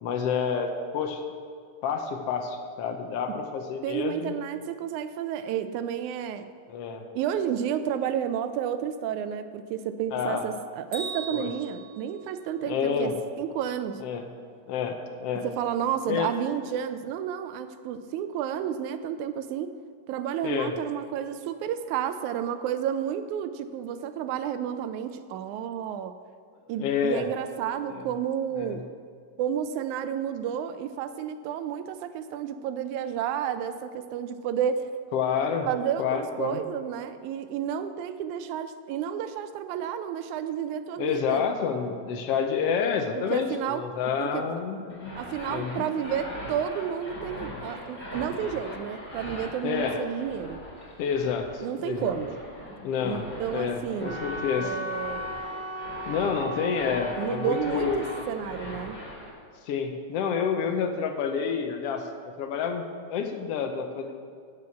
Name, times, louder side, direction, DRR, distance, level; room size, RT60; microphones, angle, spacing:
voice 1, 0.0-1.2 1.8-4.4 6.7-7.0 10.1-10.4 11.3-11.5 12.7-13.1 14.0-14.2 14.7-15.4 16.1-16.3 20.4-20.7 26.8-27.3 27.9-28.1 28.6-28.8 35.1-35.7 36.0-36.6 41.0-45.1 45.5-45.9 49.6-50.0 51.0-52.1 52.8-53.2 53.5-54.7 56.1-58.0 59.7-62.8 63.1-64.1, left 6 dB, 70° left, 5 dB, 1.5 m, -29 dB
voice 2, 3.8-6.5 7.2-14.0 15.4-19.7 20.1-26.2 26.7-28.8 29.4-35.0 35.7-41.4 43.3-43.8 44.2-44.4 45.2-50.6 51.6-52.4 53.0-54.2 54.6-55.3 57.2-59.0, right 9 dB, 80° right, 10 dB, 1.9 m, -31 dB
Bell, 10.9-12.9, right 4 dB, 40° right, 1.2 m, -40 dB
sound 1, 44.9-59.3, left 1 dB, 20° left, 2.4 m, -41 dB
Wind instrument woodwind instrument, 54.0-58.2, left 1 dB, 20° right, 0.8 m, -36 dB
12.0 x 4.9 x 8.4 m, 2.1 s
omnidirectional pair, 3.7 m